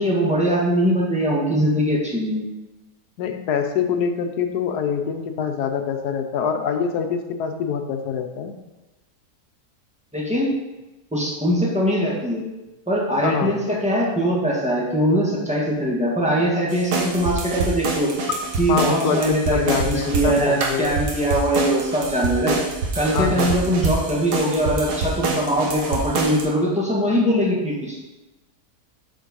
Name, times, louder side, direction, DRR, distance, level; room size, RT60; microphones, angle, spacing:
voice 1, 0.0-2.5 10.1-10.5 11.1-12.4 12.9-18.1 18.6-22.6 22.9-28.0, equal, 5° right, -5 dB, 1.7 m, -21 dB
voice 2, 3.2-8.5 13.2-13.6 18.7-21.0 23.1-23.6, left 7 dB, 80° left, 6 dB, 1.3 m, -25 dB
sound 1, 16.7-26.4, right 3 dB, 80° right, 1.7 m, -26 dB
7.7 x 4.6 x 5.4 m, 1.1 s
omnidirectional pair, 1.7 m